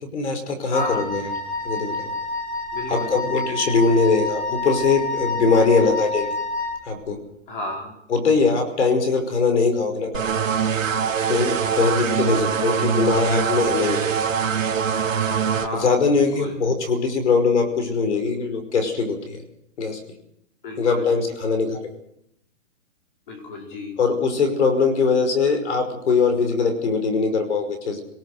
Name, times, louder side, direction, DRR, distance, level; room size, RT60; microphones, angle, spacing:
voice 1, 0.0-1.2 1.6-2.1 2.9-6.3 6.9-7.2 8.1-10.3 11.3-14.0 15.7-19.4 19.8-20.0 20.8-21.8 24.0-28.0, left 4 dB, 60° left, 7 dB, 5.4 m, -21 dB
voice 2, 0.7-1.1 2.7-3.2 7.5-8.0 12.2-12.7 15.5-16.6 20.6-21.1 23.3-24.0, left 2 dB, 40° left, 2 dB, 5.3 m, -33 dB
Wind instrument woodwind instrument, 0.7-6.8, left 3 dB, 10° left, 1.2 m, -28 dB
sound 1, 10.1-15.7, right 7 dB, 75° right, 2.8 m, -23 dB
25.0 x 19.0 x 6.6 m, 0.75 s
hypercardioid pair, 175°, 39 cm